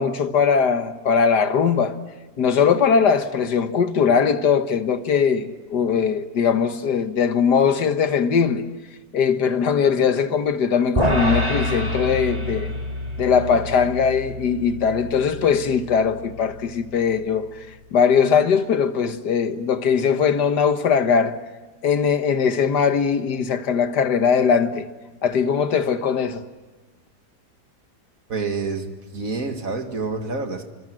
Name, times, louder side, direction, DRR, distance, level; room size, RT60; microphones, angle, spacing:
voice 1, 0.0-2.0 2.4-8.6 9.1-12.7 13.2-17.5 17.9-21.4 21.8-24.9 25.2-26.4, left 6 dB, 80° left, 1.9 m, -20 dB
sound 1, 11.0-17.3, equal, 20° right, 2.9 m, -27 dB
voice 2, 28.3-30.7, right 4 dB, 55° right, 2.4 m, -28 dB
28.0 x 25.0 x 7.7 m
omnidirectional pair, 1.8 m